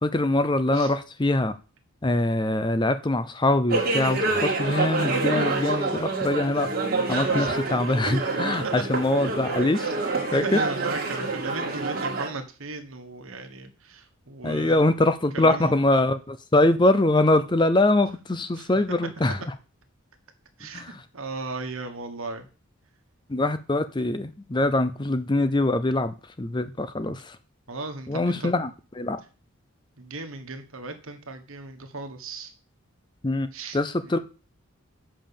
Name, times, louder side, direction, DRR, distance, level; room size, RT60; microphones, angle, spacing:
voice 1, 0.0-1.6 2.0-6.7 7.1-10.6 14.4-19.5 20.7-21.0 23.3-27.4 28.1-28.7 29.0-29.2 33.2-33.5 33.7-34.2, left 2 dB, 20° left, 11 dB, 0.5 m, -23 dB
sound 1, 3.7-12.3, right 3 dB, 45° right, 1.9 m, -27 dB
voice 2, 10.3-14.8 15.3-15.7 18.5-18.7 20.6-22.5 27.7-28.5 30.0-32.5 33.5-33.8 34.1-34.2, right 3 dB, 70° right, 7 dB, 1.4 m, -36 dB
7.5 x 5.5 x 7.0 m, 0.34 s
head